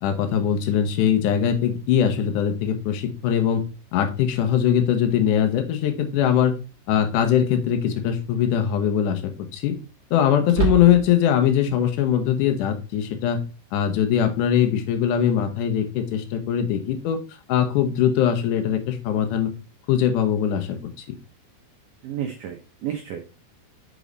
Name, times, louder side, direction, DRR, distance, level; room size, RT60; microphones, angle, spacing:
voice 1, 0.0-3.6 3.9-6.6 6.9-9.8 10.1-13.4 13.7-17.2 17.5-19.5 19.9-20.8, left 9 dB, 90° left, 5 dB, 1.8 m, -21 dB
sound 1, 5.9-6.0 7.8-8.2 8.5-8.6 10.4-11.3, right 7 dB, 50° right, 1.4 m, -27 dB
voice 2, 22.0-23.2, right 10 dB, 90° right, 3 dB, 1.8 m, -31 dB
6.5 x 5.1 x 3.9 m, 0.31 s
omnidirectional pair, 5.0 m